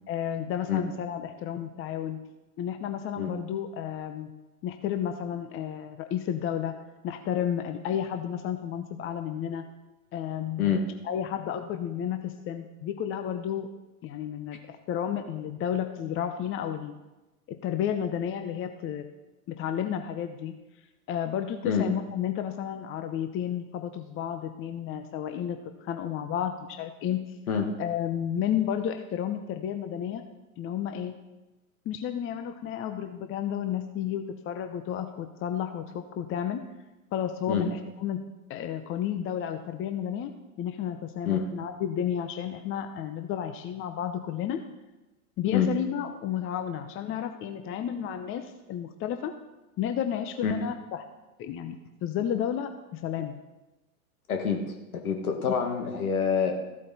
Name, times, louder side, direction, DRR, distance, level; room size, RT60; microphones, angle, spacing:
voice 1, 0.1-2.2 2.6-4.3 4.6-6.7 7.0-9.6 10.1-10.7 11.0-13.7 14.0-17.0 17.5-19.1 19.5-20.5 21.1-27.2 27.8-30.2 30.6-31.2 31.9-36.6 37.1-38.2 38.5-40.3 40.6-44.6 45.4-49.3 49.8-51.0 51.4-51.8 52.0-53.4, left 9 dB, 30° left, 8 dB, 0.8 m, -32 dB
voice 2, 54.3-54.6 55.0-56.5, left 7 dB, 75° left, 4 dB, 2.0 m, -26 dB
14.0 x 8.5 x 4.2 m, 1.0 s
hypercardioid pair, 95°, 43 cm